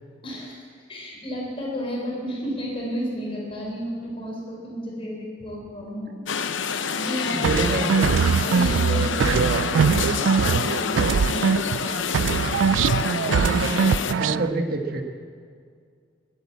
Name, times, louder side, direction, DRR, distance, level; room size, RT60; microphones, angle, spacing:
voice 1, 0.2-0.6 0.9-6.1 6.7-12.2, equal, 30° left, -2 dB, 4.6 m, -32 dB
sound 1, 6.3-14.1, left 6 dB, 80° left, 0.8 m, -27 dB
voice 2, 7.3-8.1 13.2-15.0, right 2 dB, 50° right, 4 dB, 1.5 m, -28 dB
sound 2, 7.4-11.9 12.1-14.5, right 6 dB, 75° right, 0.3 m, -22 dB
20.5 x 9.0 x 7.4 m, 2.1 s
head